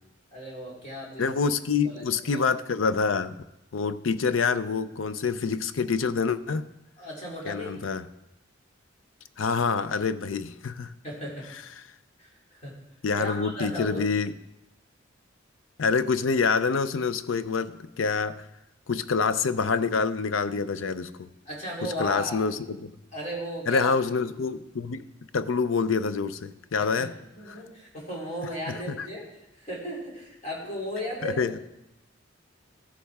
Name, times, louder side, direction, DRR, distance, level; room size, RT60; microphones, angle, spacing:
voice 1, 0.3-1.3 1.8-2.4 7.0-7.8 11.0-11.5 12.2-12.8 13.2-14.0 21.4-22.4 23.1-23.9 26.8-31.4, equal, 35° left, -3 dB, 3.0 m, -36 dB
voice 2, 1.2-3.4 3.7-6.7 7.5-8.0 9.4-10.9 13.0-14.3 15.8-18.4 18.9-21.3 21.8-22.9 23.7-25.1 25.3-27.1 27.5-27.6 28.7-29.1 31.2-31.6, left 5 dB, 85° left, 13 dB, 0.5 m, -26 dB
14.0 x 8.6 x 3.5 m, 0.91 s
head